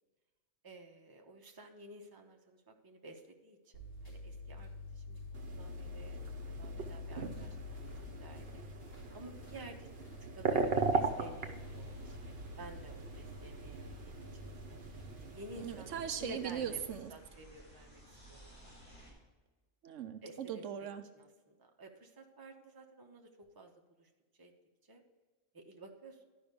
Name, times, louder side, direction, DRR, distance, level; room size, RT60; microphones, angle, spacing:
voice 1, 0.6-5.2 5.5-6.2 6.4-7.6 8.2-8.6 9.1-9.9 10.3-14.5 15.3-16.8 17.1-18.0 18.3-18.7 20.2-20.6 21.1-23.7 24.0-24.1 24.4-24.5 24.9-25.0 25.5-26.3, right 2 dB, 20° right, 2 dB, 0.9 m, -52 dB
sound 1, 3.7-15.3, left 3 dB, 85° left, 4.0 m, -48 dB
sound 2, 5.3-17.0, right 4 dB, 55° right, 1.1 m, -39 dB
sound 3, 10.6-19.1, right 1 dB, 50° left, 4.0 m, -56 dB
voice 2, 15.6-17.1 19.8-21.0, right 8 dB, 80° right, 8 dB, 1.0 m, -39 dB
11.5 x 5.5 x 5.1 m, 1.3 s
omnidirectional pair, 1.3 m